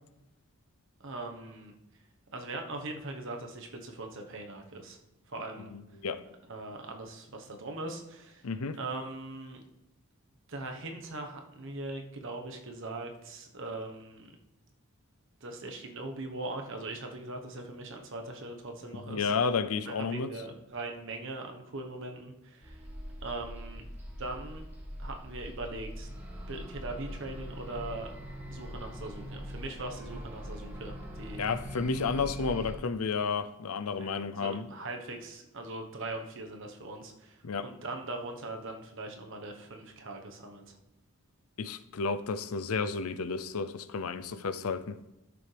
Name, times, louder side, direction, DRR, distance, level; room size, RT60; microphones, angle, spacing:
voice 1, 1.0-1.7 2.3-5.0 5.3-5.7 6.5-8.4 8.8-9.6 10.5-14.3 15.4-19.3 20.0-22.8 23.2-23.8 24.2-24.6 25.0-26.1 26.5-28.1 28.5-31.4 34.0-40.8, right 2 dB, 60° right, 1.2 m, -40 dB
voice 2, 5.7-6.2 8.4-8.8 19.1-20.3 31.4-34.7 37.4-37.7 41.6-45.0, left 5 dB, 75° left, 0.6 m, -32 dB
sound 1, 22.6-32.8, equal, 10° right, 2.0 m, -42 dB
13.0 x 7.0 x 3.4 m
head